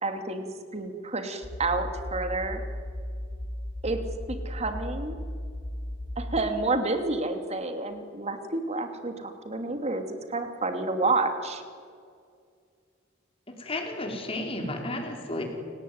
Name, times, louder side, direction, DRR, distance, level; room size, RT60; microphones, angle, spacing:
voice 1, 0.0-2.6 3.8-4.0 4.3-5.1 6.2-11.6, right 3 dB, 35° right, 6 dB, 2.9 m, -29 dB
sound 1, 1.4-6.4, left 1 dB, 50° left, 7.0 m, -36 dB
voice 2, 13.6-15.4, left 1 dB, 30° left, 2 dB, 4.8 m, -32 dB
29.0 x 19.0 x 9.6 m, 2.2 s
head